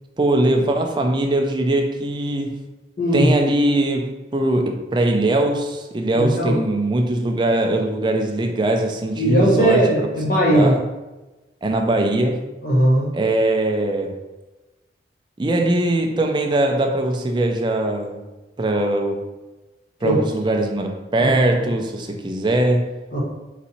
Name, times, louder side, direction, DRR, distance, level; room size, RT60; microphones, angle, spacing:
voice 1, 0.2-2.6 3.1-10.1 10.5-10.8 11.6-12.4 13.1-14.2 15.4-18.2 18.6-19.2 20.0-22.9, right 1 dB, 25° right, 3 dB, 0.4 m, -21 dB
voice 2, 3.0-3.3 6.1-6.6 9.1-10.7 12.6-13.1 20.0-20.3 21.2-21.5 23.1-23.2, right 1 dB, 50° left, -4 dB, 1.4 m, -18 dB
4.0 x 2.6 x 4.2 m, 1.1 s
head